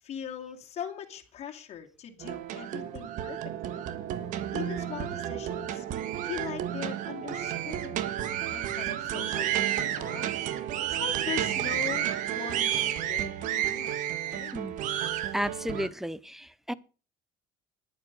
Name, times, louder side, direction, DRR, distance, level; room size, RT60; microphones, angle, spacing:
voice 1, 0.0-3.4 3.7-3.8 4.5-5.8 6.2-8.1 8.5-10.3 10.9-14.5, left 9 dB, 50° left, 2.8 m, -40 dB
sound 1, 2.2-15.9, right 11 dB, 65° right, 1.5 m, -31 dB
voice 2, 15.3-16.7, equal, 5° right, 0.7 m, -33 dB
11.0 x 9.5 x 6.8 m
cardioid pair, 120°, 14 cm